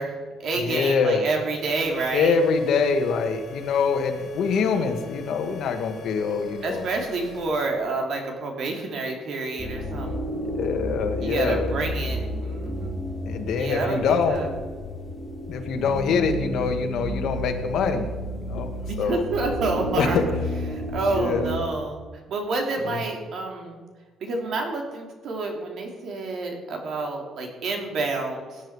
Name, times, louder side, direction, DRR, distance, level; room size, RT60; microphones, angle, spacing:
voice 1, 0.0-2.4 4.5-5.0 6.6-10.3 11.2-13.0 13.5-14.5 18.9-20.2 20.7-22.0 22.3-23.8 24.2-28.6, right 3 dB, 55° right, 2 dB, 2.8 m, -29 dB
voice 2, 0.5-1.3 2.1-6.9 10.6-11.7 13.2-14.4 15.5-18.1 18.3-18.7 19.0-19.2 19.9-20.2 21.1-21.5 22.8-23.0, left 5 dB, 65° left, 6 dB, 1.6 m, -24 dB
sound 1, 1.5-7.4, left 7 dB, 40° left, 4.0 m, -43 dB
sound 2, 9.6-21.6, equal, 15° left, 2.9 m, -31 dB
17.5 x 10.0 x 4.7 m, 1.4 s
cardioid pair, 150°, 0 cm